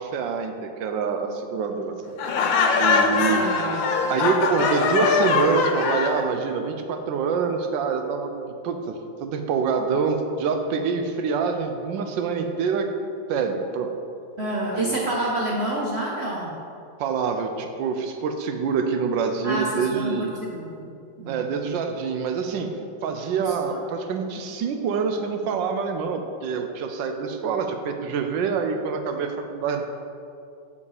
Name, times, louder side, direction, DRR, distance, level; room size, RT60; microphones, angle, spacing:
voice 1, 0.0-2.0 2.8-3.4 4.1-8.3 8.6-12.9 13.3-13.9 14.7-15.0 17.0-20.3 21.3-22.7 23.0-29.8, right 5 dB, 75° right, 6 dB, 1.3 m, -26 dB
Laughter, 2.2-6.2, left 4 dB, 80° left, 1.4 m, -22 dB
voice 2, 3.1-3.8 14.4-16.5 19.4-20.9 21.2-21.4 23.4-23.8 27.2-27.5, right 1 dB, 60° right, -3 dB, 0.7 m, -29 dB
7.0 x 5.5 x 4.9 m, 2.5 s
omnidirectional pair, 2.1 m